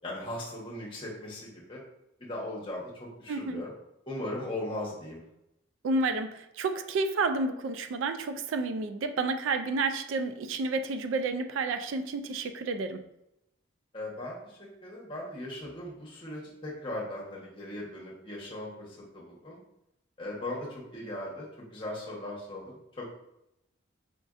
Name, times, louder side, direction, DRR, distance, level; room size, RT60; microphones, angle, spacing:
voice 1, 0.0-1.8 2.2-3.7 4.1-5.2 13.9-19.6 20.2-23.1, left 1 dB, 25° left, -4 dB, 0.9 m, -38 dB
voice 2, 3.3-3.6 5.8-13.0, right 3 dB, 80° right, 9 dB, 0.3 m, -30 dB
5.0 x 2.5 x 2.4 m, 0.83 s
head